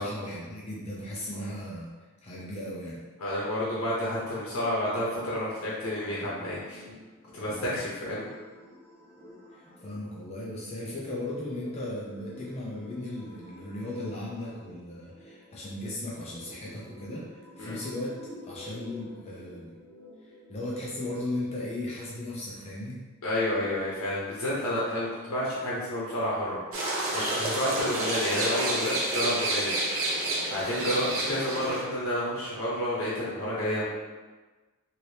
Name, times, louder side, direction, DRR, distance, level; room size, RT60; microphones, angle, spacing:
voice 1, 0.0-1.9 2.2-3.0 9.5-17.2 17.6-18.1 18.4-19.7 20.2-23.0, left 1 dB, 30° left, -5 dB, 0.4 m, -36 dB
voice 2, 3.2-6.8 7.3-8.3 17.6-17.8 23.2-29.7 30.5-33.8, left 1 dB, 90° left, -7 dB, 0.8 m, -30 dB
sound 1, 5.8-21.2, left 1 dB, 10° left, 1.0 m, -49 dB
sound 2, 26.7-31.8, right 1 dB, 75° right, 0.8 m, -29 dB
2.8 x 2.8 x 3.2 m, 1.3 s
head